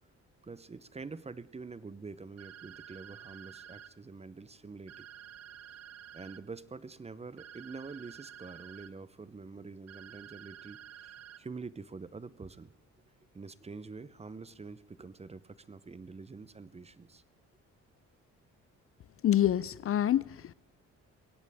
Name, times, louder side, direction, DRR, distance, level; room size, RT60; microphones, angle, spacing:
voice 1, 0.4-5.1 6.1-12.7 13.3-17.2, right 4 dB, 20° right, 0.7 m, -46 dB
sound 1, 2.4-3.9 4.9-6.4 7.4-8.9 9.9-11.4, right 10 dB, 55° right, 0.7 m, -50 dB
voice 2, 19.2-20.5, left 11 dB, 45° left, 0.5 m, -27 dB
22.0 x 17.0 x 3.6 m
cardioid pair, 90°, 30 cm